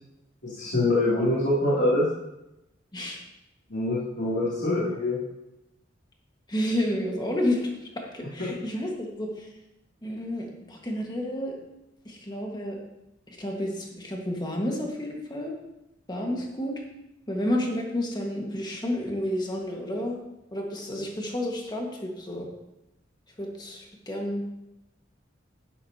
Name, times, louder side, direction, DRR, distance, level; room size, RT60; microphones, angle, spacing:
voice 1, 0.4-2.1 3.7-5.2, left 1 dB, 65° left, -9 dB, 2.8 m, -24 dB
voice 2, 6.5-9.5 10.0-11.5 12.0-12.8 13.4-15.5 16.1-16.7 17.3-20.2 20.5-22.5 23.4-24.4, left 1 dB, 20° left, 0 dB, 1.6 m, -30 dB
11.5 x 9.8 x 2.9 m, 0.90 s
head